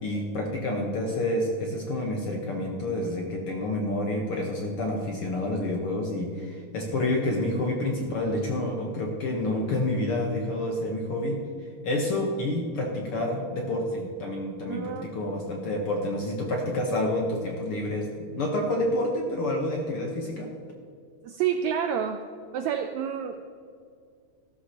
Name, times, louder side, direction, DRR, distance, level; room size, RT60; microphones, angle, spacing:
voice 1, 0.0-11.4 11.8-20.5, left 1 dB, 60° left, 0 dB, 1.6 m, -28 dB
voice 2, 14.7-15.1 21.2-22.2 22.5-23.4, right 8 dB, 80° right, 6 dB, 1.6 m, -28 dB
15.0 x 12.5 x 2.9 m, 2.2 s
omnidirectional pair, 3.7 m